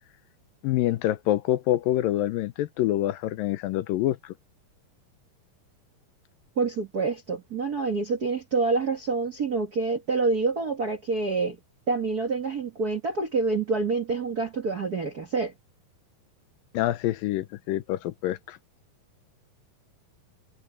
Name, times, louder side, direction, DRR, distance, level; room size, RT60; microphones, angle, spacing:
voice 1, 0.6-4.3 16.7-18.6, left 14 dB, 80° left, 2.4 m, -26 dB
voice 2, 6.5-11.6 11.9-15.5, right 4 dB, 45° right, 1.3 m, -27 dB
omnidirectional pair, 4.1 m